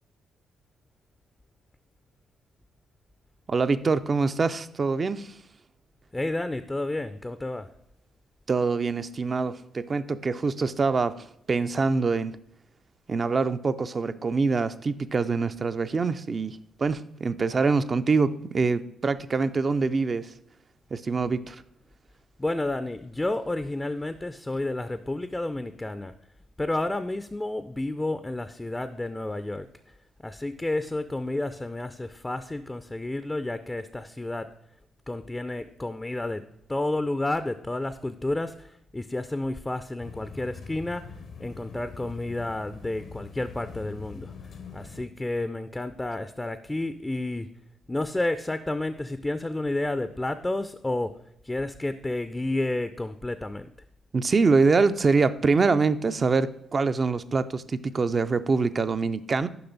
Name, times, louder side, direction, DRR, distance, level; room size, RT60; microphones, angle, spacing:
voice 1, 3.5-5.3 8.5-11.1 11.5-12.3 13.1-20.3 20.9-21.6 54.1-59.5, right 4 dB, 40° right, 11 dB, 0.4 m, -24 dB
voice 2, 6.1-7.7 22.4-26.1 26.6-29.7 30.2-34.5 35.1-36.4 36.7-41.0 41.4-47.5 47.9-51.1 51.4-53.7, left 2 dB, 20° left, 11 dB, 0.4 m, -31 dB
sound 1, 40.0-45.1, left 5 dB, 60° left, 0.7 m, -43 dB
6.9 x 5.5 x 3.9 m, 0.75 s
hypercardioid pair, 50°, 0 cm